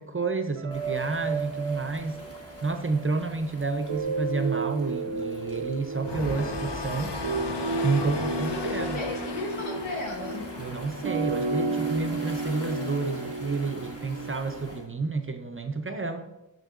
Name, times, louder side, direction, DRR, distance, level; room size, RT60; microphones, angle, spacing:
voice 1, 0.0-2.2 2.6-7.2 7.8-9.0 10.6-16.3, right 3 dB, 30° right, 7 dB, 0.4 m, -30 dB
sound 1, 0.6-3.4 3.9-14.8, right 3 dB, 80° right, 0.6 m, -33 dB
Waves surf, 0.7-14.9, equal, 30° left, 1.2 m, -45 dB
sound 2, 6.0-11.2, left 3 dB, 60° left, 0.7 m, -36 dB
voice 2, 8.3-10.5, left 2 dB, 85° left, 1 dB, 1.1 m, -35 dB
6.5 x 6.5 x 2.4 m, 0.96 s
wide cardioid pair, 55°, 46 cm